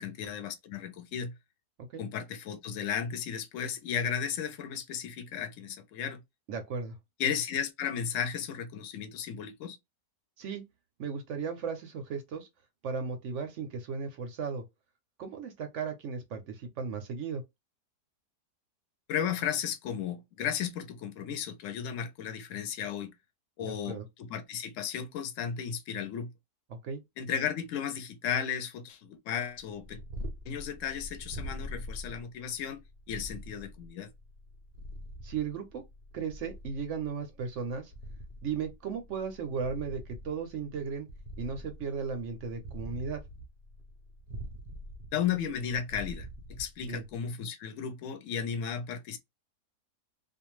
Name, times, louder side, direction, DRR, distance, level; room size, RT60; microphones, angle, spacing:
voice 1, 0.0-1.3 2.0-6.2 7.2-9.8 19.1-23.1 23.6-26.3 27.2-30.0 30.5-32.8 33.1-34.1 45.1-49.2, left 8 dB, 65° left, 0.9 m, -34 dB
voice 2, 6.5-7.0 10.4-10.6 11.0-12.5 12.8-14.6 15.2-17.4 23.6-24.1 26.7-27.0 35.2-35.8 36.1-37.9 38.4-41.1 41.4-43.2 46.8-47.0, right 5 dB, 65° right, 0.7 m, -36 dB
Purr, 29.6-47.3, equal, 80° right, 0.3 m, -44 dB
2.5 x 2.3 x 3.0 m
omnidirectional pair, 1.7 m